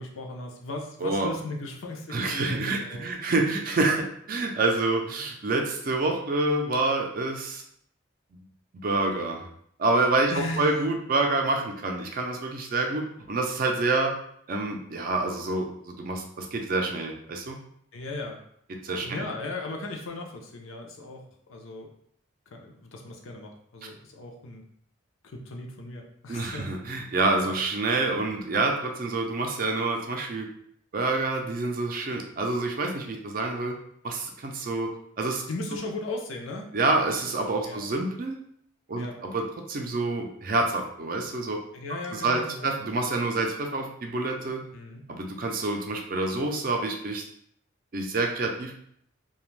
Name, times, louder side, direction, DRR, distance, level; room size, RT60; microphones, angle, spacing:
voice 1, 0.0-3.1 10.3-10.9 17.9-18.4 19.0-21.2 21.5-21.9 22.5-24.6 25.2-26.7 27.4-27.6 35.5-36.7 37.6-37.8 39.0-39.2 41.7-42.7 44.7-45.0, left 2 dB, 80° left, 2 dB, 0.5 m, -37 dB
voice 2, 2.1-7.6 8.8-9.5 9.8-14.1 14.5-17.6 18.7-19.3 23.8-23.9 26.3-30.5 30.9-33.8 34.0-34.9 35.2-35.4 36.7-38.4 38.9-41.6 42.1-44.6 45.1-47.2 47.9-48.7, right 2 dB, 45° right, 2 dB, 0.4 m, -27 dB
2.4 x 2.3 x 3.1 m, 0.67 s
head